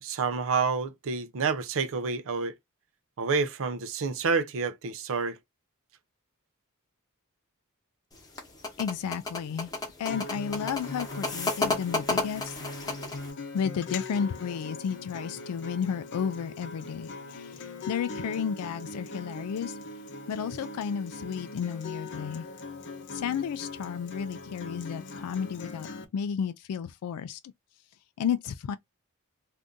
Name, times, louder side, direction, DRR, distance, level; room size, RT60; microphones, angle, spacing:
voice 1, 0.0-2.5 3.2-5.4, right 5 dB, 65° right, 0.5 m, -28 dB
sound 1, 8.1-13.3, left 2 dB, 15° left, 1.0 m, -32 dB
voice 2, 8.8-9.7 10.0-12.6 13.5-19.8 20.3-22.5 23.1-27.5 28.2-28.8, left 7 dB, 85° left, 0.3 m, -32 dB
Acoustic guitar, 10.0-26.1, left 3 dB, 55° left, 0.7 m, -41 dB
2.6 x 2.6 x 3.5 m
head